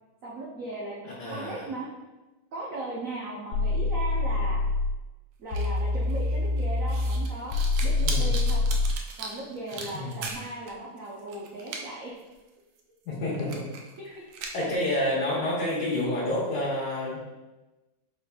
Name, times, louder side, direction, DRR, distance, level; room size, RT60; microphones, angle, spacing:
voice 1, 0.2-1.0 1.3-1.9 2.5-4.6 5.4-8.6 9.2-12.1 14.0-14.1 14.6-15.1, right 2 dB, 90° right, -4 dB, 0.7 m, -37 dB
voice 2, 1.0-1.7 8.0-8.3 9.9-10.3 13.1-13.6 14.0-14.2 14.5-17.2, left 1 dB, 60° left, -7 dB, 1.4 m, -29 dB
sound 1, 3.5-5.0 5.5-9.0, left 3 dB, 85° left, 1.4 m, -25 dB
sound 2, 5.5-10.7 11.0-11.8 12.2-12.3 12.8-12.9 13.3-14.0 14.3-14.8, right 4 dB, 75° right, 1.2 m, -38 dB
5.0 x 4.1 x 2.2 m, 1.1 s
omnidirectional pair, 2.3 m